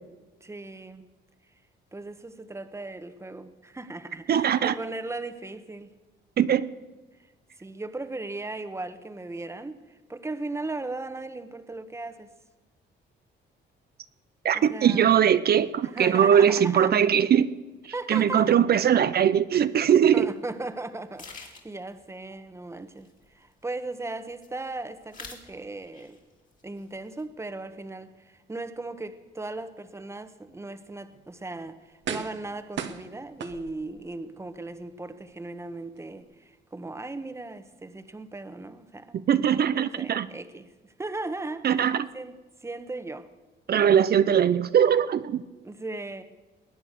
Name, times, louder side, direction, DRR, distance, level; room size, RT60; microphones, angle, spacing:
voice 1, 0.4-1.1 1.9-5.9 7.6-12.3 14.5-15.2 15.9-16.9 17.9-18.5 20.1-23.1 23.3-26.2 26.6-39.3 39.7-42.4 42.6-43.3 45.6-46.2, right 2 dB, 15° right, 10 dB, 1.2 m, -37 dB
voice 2, 4.3-4.7 6.4-6.7 14.4-17.5 17.8-20.3 39.3-40.3 41.6-42.1 43.7-45.4, right 9 dB, 50° right, 13 dB, 0.6 m, -21 dB
sound 1, 19.6-19.7 20.3-20.4 20.7-20.8 21.2-21.9 22.8-23.7 24.0-24.7 25.0-25.5 25.8-26.3 26.6-27.2, left 4 dB, 40° left, 3.0 m, -46 dB
sound 2, 31.1-31.3 32.0-32.5 32.8-34.0 34.5-34.6, right 8 dB, 70° right, 1.3 m, -35 dB
20.5 x 8.9 x 6.7 m, 1.2 s
cardioid pair, 90°, 20 cm